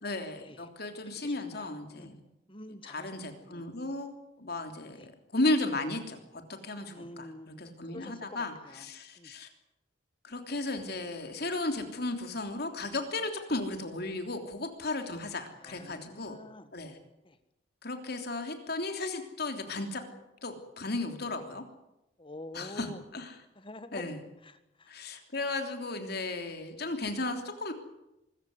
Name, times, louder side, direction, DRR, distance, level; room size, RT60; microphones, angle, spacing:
voice 1, 0.0-2.2 2.8-9.5 10.2-16.4 16.7-17.0 17.8-20.0 20.4-21.6 22.5-23.4 23.9-24.2 24.9-27.7, left 2 dB, 50° left, 6 dB, 3.2 m, -35 dB
voice 2, 1.2-2.1 2.5-3.1 3.5-3.6 4.9-5.1 6.9-8.9 9.2-9.3 15.6-16.7 17.2-17.4 22.2-23.0 23.5-24.0 24.4-25.2, left 1 dB, 25° left, 11 dB, 1.6 m, -47 dB
24.0 x 15.0 x 9.5 m, 0.91 s
head